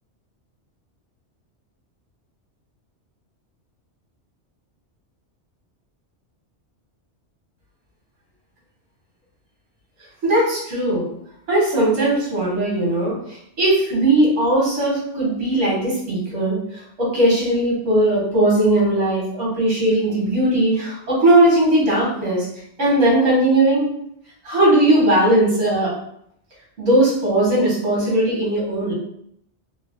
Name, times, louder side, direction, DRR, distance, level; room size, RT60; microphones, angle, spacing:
voice 1, 10.2-11.1 11.5-13.1 13.6-16.6 17.0-22.5 22.8-23.8 24.4-25.9 26.8-28.9, right 1 dB, 85° right, -5 dB, 1.5 m, -18 dB
3.1 x 2.0 x 2.4 m, 0.69 s
omnidirectional pair, 1.2 m